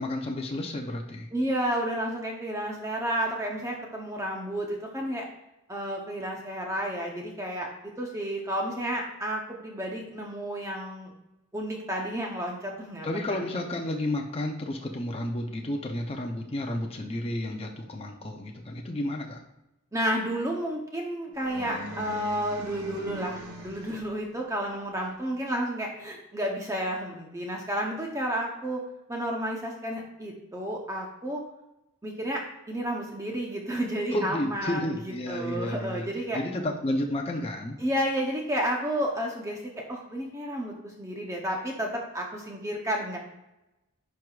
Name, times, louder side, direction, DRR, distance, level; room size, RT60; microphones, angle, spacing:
voice 1, 0.0-1.3 13.0-19.4 34.1-36.1 36.3-37.8, left 1 dB, 25° left, 1 dB, 0.6 m, -31 dB
voice 2, 1.3-5.3 5.7-11.1 11.5-13.4 19.9-28.8 29.1-31.4 32.0-36.4 37.8-43.2, equal, 15° right, 0 dB, 0.8 m, -31 dB
sound 1, 21.3-24.2, right 1 dB, 65° right, 1.3 m, -41 dB
11.0 x 4.6 x 2.4 m, 0.94 s
head